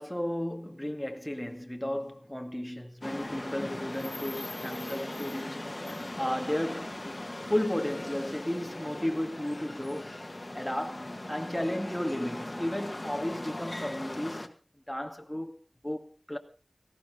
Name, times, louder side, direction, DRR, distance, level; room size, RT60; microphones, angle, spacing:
voice 1, 0.0-7.0 7.5-10.2 10.5-15.6 15.8-16.4, left 1 dB, 10° left, 2.1 m, -34 dB
sound 1, 3.0-14.5, left 1 dB, 35° left, 1.7 m, -39 dB
18.5 x 15.5 x 3.8 m
wide cardioid pair, 55°, 0 cm